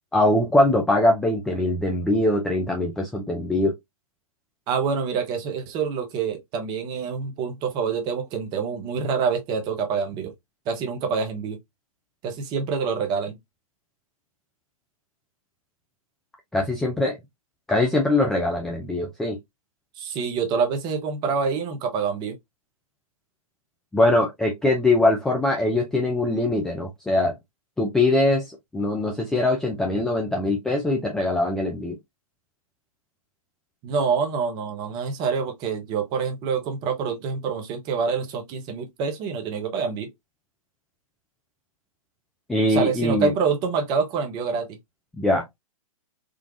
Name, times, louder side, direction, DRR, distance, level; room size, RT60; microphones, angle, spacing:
voice 1, 0.1-3.8 16.5-17.2 17.7-19.4 23.9-27.4 27.8-28.4 28.7-32.0 42.5-43.3 45.2-45.4, left 2 dB, 5° left, 0.3 m, -22 dB
voice 2, 4.7-10.3 10.7-11.6 12.2-13.4 20.0-22.4 33.8-40.1 42.7-44.7, right 5 dB, 25° right, 0.8 m, -26 dB
3.8 x 2.3 x 2.5 m
figure-of-eight pair, 120°, 19 cm